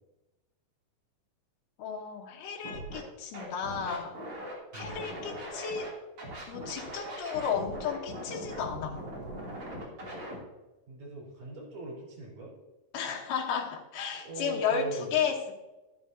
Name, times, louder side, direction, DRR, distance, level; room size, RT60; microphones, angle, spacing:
voice 1, 1.8-4.1 4.7-5.9 6.5-9.0 12.9-15.5, left 7 dB, 75° left, -2 dB, 2.7 m, -33 dB
Scratching (performance technique), 2.6-3.0 3.3-5.9 6.2-10.4, right 1 dB, 40° right, 3.7 m, -40 dB
voice 2, 4.7-5.1 10.9-12.5 14.2-15.3, right 3 dB, 75° right, -4 dB, 6.0 m, -40 dB
12.5 x 10.5 x 2.8 m, 1.1 s
omnidirectional pair, 3.9 m